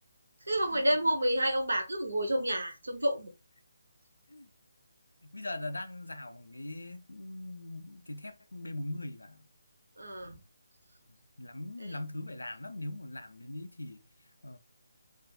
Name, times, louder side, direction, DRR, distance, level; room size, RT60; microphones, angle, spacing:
voice 1, 0.4-3.3 10.0-10.3 11.8-12.0, equal, 65° right, 1.0 m, -29 dB
voice 2, 5.2-9.4 11.1-14.0 14.4-14.6, left 2 dB, 70° left, 0.5 m, -41 dB
3.5 x 2.6 x 2.4 m
figure-of-eight pair, 145°, 0 cm